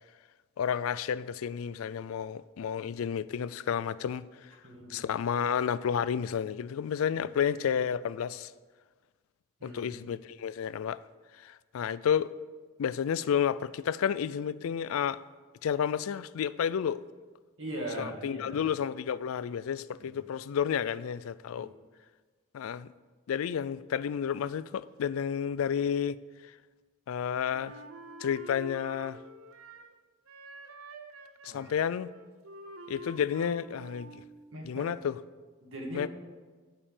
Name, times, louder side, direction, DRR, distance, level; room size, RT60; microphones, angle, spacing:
voice 1, 0.6-4.3 4.9-8.5 9.6-11.0 11.4-12.3 12.8-15.2 15.6-17.0 18.0-21.7 22.5-22.9 23.3-26.2 27.1-27.7 28.2-29.2 31.4-32.1 32.9-34.1 34.6-35.2 35.9-36.1, left 8 dB, 85° left, 0.3 m, -31 dB
voice 2, 4.6-5.0 9.6-10.0 17.6-18.6 20.0-20.1 21.5-21.7 31.5-31.6 34.5-34.9 35.6-36.1, right 1 dB, 65° right, 2.3 m, -40 dB
Wind instrument woodwind instrument, 27.5-30.0 30.3-34.3, right 1 dB, 90° right, 0.8 m, -47 dB
11.5 x 5.4 x 6.5 m
head